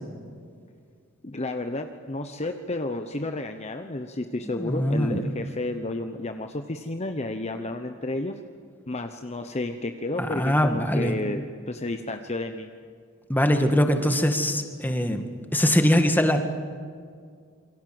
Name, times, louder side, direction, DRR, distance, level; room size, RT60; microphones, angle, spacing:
voice 1, 1.2-8.3 8.9-11.4 11.7-12.7, left 2 dB, 30° left, 6 dB, 1.0 m, -31 dB
voice 2, 4.4-5.2 10.2-11.1 13.3-15.2 15.5-16.4, equal, 10° left, 6 dB, 1.9 m, -22 dB
27.5 x 23.5 x 7.9 m, 2.1 s
head